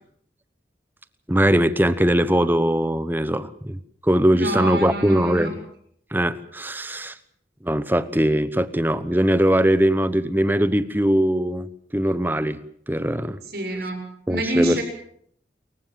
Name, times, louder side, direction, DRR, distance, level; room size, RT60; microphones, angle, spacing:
voice 1, 1.3-5.5 6.1-7.2 7.6-12.6 12.9-13.4 14.3-14.8, right 1 dB, 10° right, 14 dB, 1.0 m, -21 dB
voice 2, 4.3-5.5 13.5-14.8, right 1 dB, 60° right, 4 dB, 7.0 m, -27 dB
28.0 x 15.5 x 7.6 m, 0.67 s
head